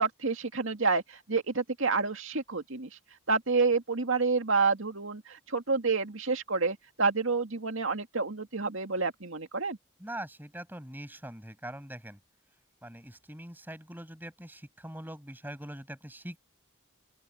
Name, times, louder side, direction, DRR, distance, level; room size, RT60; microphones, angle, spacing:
voice 1, 0.0-2.9 3.3-9.8, right 4 dB, 70° right, 2.2 m, -29 dB
voice 2, 10.0-12.2 12.8-16.4, right 1 dB, 10° right, 7.4 m, -43 dB
open air
head